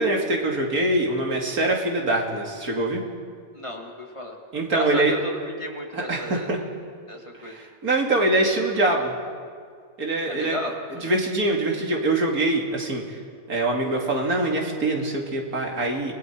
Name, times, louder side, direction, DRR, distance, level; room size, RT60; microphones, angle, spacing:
voice 1, 0.0-3.0 4.5-5.1 5.9-6.6 7.4-9.1 10.0-10.6 10.9-13.2 13.5-16.1, right 2 dB, 85° right, 0 dB, 3.0 m, -24 dB
voice 2, 3.5-4.4 4.7-6.5 7.1-7.6 10.2-11.2, left 1 dB, 20° left, 0 dB, 2.3 m, -34 dB
29.5 x 21.0 x 4.6 m, 2.1 s
omnidirectional pair, 1.5 m